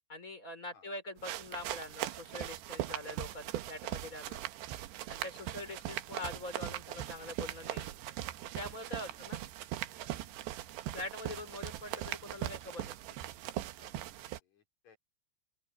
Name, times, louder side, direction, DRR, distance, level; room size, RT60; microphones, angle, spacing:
voice 1, 0.1-4.4 5.1-7.9 8.5-9.4 10.9-13.0, left 2 dB, 20° left, 4.9 m, -44 dB
sound 1, 1.2-14.4, right 14 dB, 85° right, 3.2 m, -40 dB
voice 2, 13.8-15.0, left 3 dB, 45° left, 4.9 m, -63 dB
open air
omnidirectional pair, 4.8 m